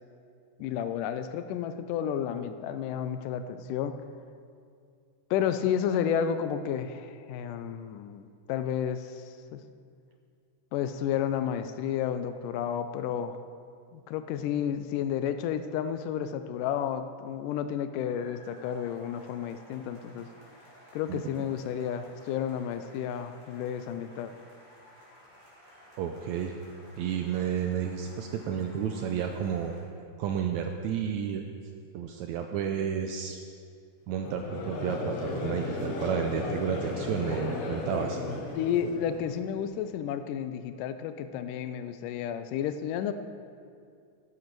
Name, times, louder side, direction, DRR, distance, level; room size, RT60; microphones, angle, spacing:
voice 1, 0.6-3.9 5.3-9.6 10.7-13.4 13.9-20.3 20.9-24.3 38.6-43.1, left 9 dB, 85° left, 10 dB, 2.1 m, -31 dB
sound 1, 18.0-29.8, equal, 15° right, 3.2 m, -55 dB
voice 2, 26.0-26.5 27.0-29.7 30.2-31.4 31.9-33.4 34.1-38.2, right 8 dB, 80° right, 5 dB, 1.7 m, -31 dB
Conversation / Crowd, 34.2-39.5, left 3 dB, 60° left, 1.7 m, -35 dB
12.5 x 10.0 x 4.6 m, 2.3 s
omnidirectional pair, 3.8 m